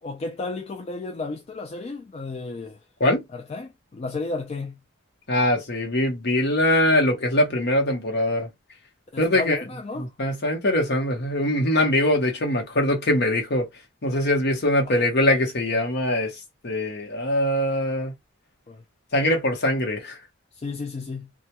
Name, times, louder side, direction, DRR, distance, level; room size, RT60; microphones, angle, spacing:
voice 1, 0.0-2.9 3.3-4.8 9.1-10.1 14.9-15.0 18.7-18.8 20.5-21.3, left 3 dB, 30° left, 0.3 m, -33 dB
voice 2, 5.3-8.5 9.2-9.6 10.0-13.7 14.0-18.1 19.1-20.2, left 1 dB, 55° left, 0.8 m, -22 dB
2.2 x 2.1 x 2.8 m
head